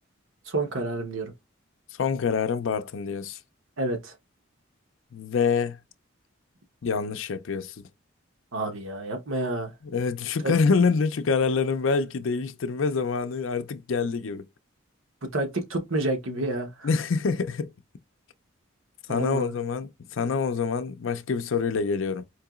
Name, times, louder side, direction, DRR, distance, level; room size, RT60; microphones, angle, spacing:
voice 1, 0.5-1.3 3.8-4.1 8.5-9.7 10.4-10.5 15.2-16.9 19.1-19.6, right 2 dB, 85° right, 1.1 m, -29 dB
voice 2, 2.0-3.4 5.1-5.8 6.8-7.8 9.8-14.4 16.8-17.7 19.1-22.2, left 5 dB, 80° left, 0.5 m, -26 dB
4.5 x 2.8 x 2.4 m
head